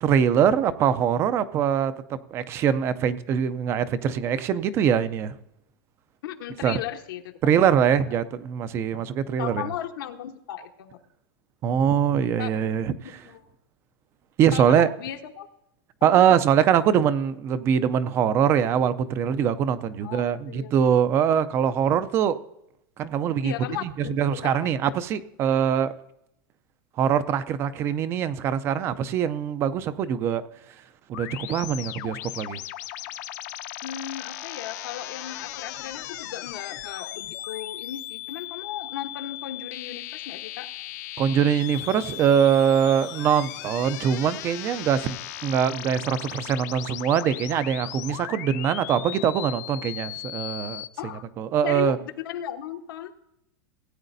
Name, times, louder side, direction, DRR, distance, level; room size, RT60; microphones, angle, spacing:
voice 1, 0.0-5.3 6.6-6.8 7.4-9.6 11.6-12.9 14.4-14.9 16.0-22.4 23.0-23.5 23.8-25.9 27.0-30.4 31.1-32.6 41.2-45.2 45.4-50.8 51.4-52.0, right 8 dB, 20° right, 15 dB, 0.4 m, -23 dB
voice 2, 6.2-7.3 7.8-8.0 8.9-9.1 9.4-11.0 12.4-12.5 13.2-13.5 14.5-15.5 16.1-16.4 20.0-20.9 23.4-24.7 33.8-40.7 51.0-51.2 51.6-52.0 52.2-53.1, left 11 dB, 75° left, 4 dB, 1.1 m, -36 dB
sound 1, 31.1-50.9, left 15 dB, 50° left, 0.6 m, -37 dB
17.5 x 9.0 x 2.6 m, 0.82 s
supercardioid pair, 170°, 12 cm